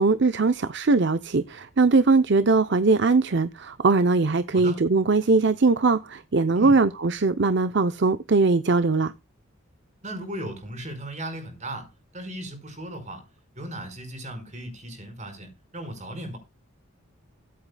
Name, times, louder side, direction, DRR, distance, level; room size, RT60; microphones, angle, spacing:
voice 1, 0.0-9.1, right 3 dB, 50° right, 0.6 m, -21 dB
voice 2, 10.0-11.9 12.1-13.2 13.6-16.4, right 1 dB, 35° right, 5.0 m, -36 dB
23.0 x 8.5 x 2.3 m
head